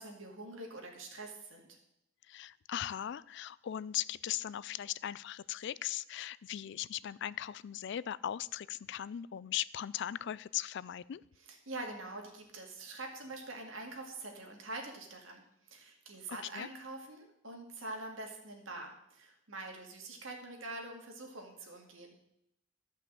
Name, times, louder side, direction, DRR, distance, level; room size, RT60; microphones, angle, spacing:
voice 1, 0.0-1.8 11.4-22.1, right 2 dB, 80° right, 2 dB, 2.4 m, -45 dB
voice 2, 2.3-11.2 16.3-16.7, left 11 dB, 60° left, 19 dB, 0.3 m, -38 dB
12.5 x 5.6 x 7.7 m, 0.79 s
head